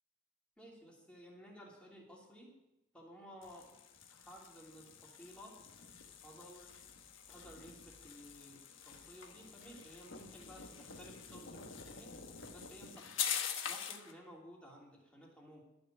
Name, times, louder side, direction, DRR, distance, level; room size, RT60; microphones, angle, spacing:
voice 1, 0.6-2.6 2.9-3.7 4.1-5.6 6.2-6.8 7.3-12.1 12.5-13.1 13.7-15.6, equal, 5° left, -3 dB, 2.9 m, -55 dB
sound 1, 3.4-14.1, left 8 dB, 75° left, 1.4 m, -45 dB
12.5 x 6.9 x 9.0 m, 0.94 s
head